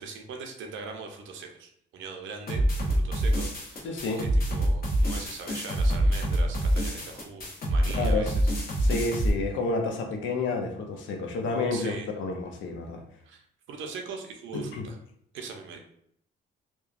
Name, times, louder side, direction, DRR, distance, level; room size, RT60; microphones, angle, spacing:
voice 1, 0.0-8.9 11.7-12.1 13.3-15.0 15.3-15.8, right 4 dB, 75° right, 3 dB, 0.5 m, -41 dB
sound 1, 2.5-9.3, right 1 dB, 50° left, 0.9 m, -26 dB
voice 2, 3.8-4.3 7.9-8.4 8.8-13.0 14.5-14.8, left 3 dB, 75° left, 4 dB, 0.6 m, -30 dB
2.9 x 2.2 x 2.4 m, 0.69 s
cardioid pair, 90°, 20 cm